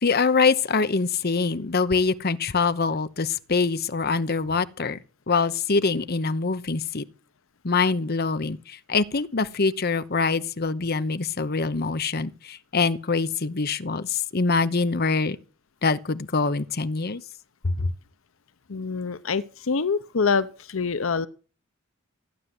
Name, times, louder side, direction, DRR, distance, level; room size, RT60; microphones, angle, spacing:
voice 1, 0.0-5.0 5.3-7.0 7.6-15.4 15.8-17.2 17.6-17.9, left 4 dB, 50° left, 0.9 m, -24 dB
voice 2, 18.7-21.3, left 5 dB, 90° left, 0.8 m, -25 dB
14.5 x 9.5 x 7.8 m
head